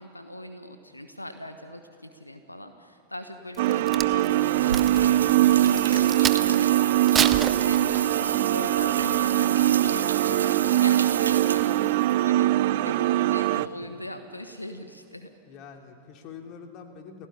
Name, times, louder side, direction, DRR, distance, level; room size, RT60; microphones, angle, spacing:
voice 1, 0.0-15.3, left 1 dB, 85° left, 8 dB, 1.3 m, -41 dB
Crack, 3.5-6.6 7.0-8.3 8.8-9.0, right 7 dB, 20° right, 0.9 m, -30 dB
sound 1, 3.6-13.7, right 15 dB, 50° right, 0.5 m, -22 dB
sound 2, 4.3-12.2, right 6 dB, 70° right, 1.2 m, -32 dB
voice 2, 13.5-13.8 15.5-17.3, left 6 dB, 40° left, 4 dB, 2.8 m, -45 dB
29.5 x 16.5 x 9.9 m, 2.7 s
figure-of-eight pair, 90°, 0 cm